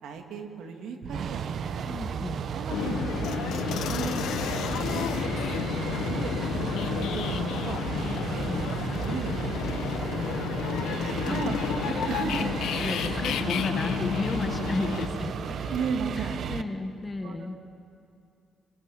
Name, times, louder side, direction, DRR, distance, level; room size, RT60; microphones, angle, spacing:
voice 1, 0.0-2.2 2.5-5.1 5.7-6.4 6.9-7.8 8.3-8.6 8.9-9.8 10.8-12.5 13.2-13.7 15.7-16.6 17.2-17.6, right 5 dB, 80° right, 4 dB, 2.8 m, -36 dB
sound 1, 1.0-16.6, right 7 dB, 60° right, 0.9 m, -34 dB
voice 2, 1.8-2.4 6.2-6.5 8.5-8.8 11.3-11.6 12.7-15.6 16.2-17.6, left 2 dB, 25° left, 7 dB, 1.6 m, -34 dB
sound 2, 2.7-15.1, left 8 dB, 80° left, 1.1 m, -31 dB
sound 3, 3.0-15.9, left 4 dB, 45° left, 2.3 m, -45 dB
24.0 x 20.5 x 9.0 m, 2.5 s
cardioid pair, 90°, 0 cm